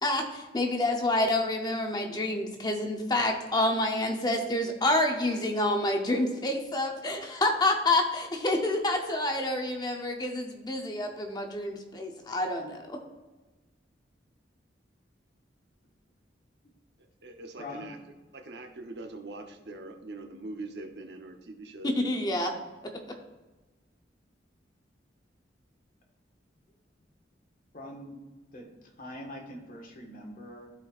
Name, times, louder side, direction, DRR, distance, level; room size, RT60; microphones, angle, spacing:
voice 1, 0.0-13.0 21.8-22.6 22.8-23.2, left 1 dB, 20° left, 2 dB, 0.7 m, -28 dB
voice 2, 17.0-18.0 18.3-22.5, right 2 dB, 65° right, 4 dB, 0.8 m, -43 dB
voice 3, 17.6-17.9 27.7-28.2 28.5-30.7, left 1 dB, 50° left, -1 dB, 1.5 m, -43 dB
13.5 x 4.6 x 2.4 m, 1.2 s
head